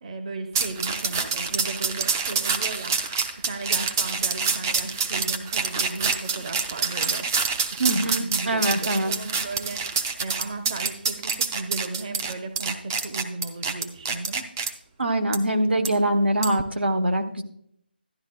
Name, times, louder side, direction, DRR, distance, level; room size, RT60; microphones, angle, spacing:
voice 1, 0.0-14.5, right 3 dB, 35° right, 6 dB, 0.8 m, -36 dB
sound 1, 0.5-14.7 15.3-15.4 15.8-15.9 16.4-16.6, right 5 dB, 15° right, 0.4 m, -27 dB
voice 2, 7.8-9.1 15.0-17.4, right 1 dB, 80° right, 7 dB, 1.0 m, -23 dB
12.5 x 10.5 x 2.2 m, 0.70 s
figure-of-eight pair, 160°, 6 cm